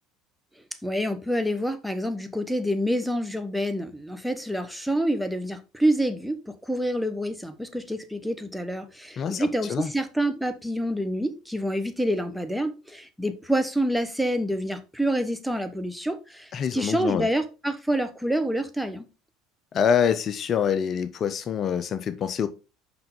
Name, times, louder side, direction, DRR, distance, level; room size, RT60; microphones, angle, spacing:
voice 1, 0.8-19.1, equal, ahead, 1.0 m, -27 dB
voice 2, 9.2-9.9 16.5-17.3 19.7-22.5, left 7 dB, 45° left, 0.5 m, -25 dB
5.7 x 5.6 x 3.7 m
hypercardioid pair, 70°, 0 cm